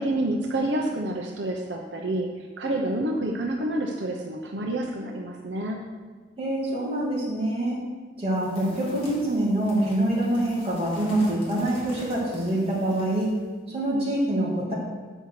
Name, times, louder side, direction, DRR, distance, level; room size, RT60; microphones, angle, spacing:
voice 1, 0.0-2.3 2.6-5.8 13.9-14.1, right 1 dB, 80° right, 1 dB, 0.8 m, -28 dB
voice 2, 6.4-7.8 8.2-13.3 13.7-14.7, right 1 dB, 30° right, -5 dB, 2.6 m, -25 dB
sound 1, 8.3-13.4, equal, 35° left, 2.6 m, -43 dB
8.1 x 5.4 x 6.5 m, 1.4 s
head